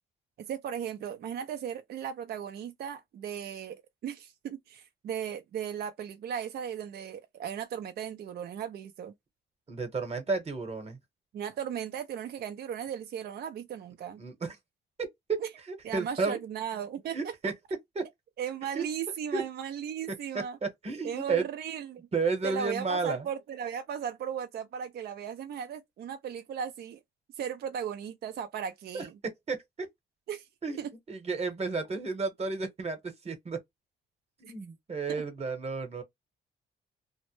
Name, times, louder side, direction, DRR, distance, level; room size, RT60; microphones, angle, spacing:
voice 1, 0.4-9.1 11.3-14.2 15.4-15.5 15.8-17.3 18.4-20.6 21.0-22.1 22.4-27.0 27.4-29.2 30.3-30.5 30.8-30.9 34.4-34.5 35.1-35.2, right 8 dB, 55° right, 0.4 m, -36 dB
voice 2, 9.7-11.0 14.2-14.5 15.0-15.4 15.7-16.4 17.1-17.5 17.9-18.0 18.7-18.9 19.3-19.4 20.6-21.4 22.1-23.3 28.9-29.1 29.5-29.6 30.6-30.8 31.1-33.0 33.2-33.6 34.4-36.0, right 4 dB, 30° right, 1.0 m, -32 dB
2.1 x 2.1 x 3.0 m
cardioid pair, 90°, 20 cm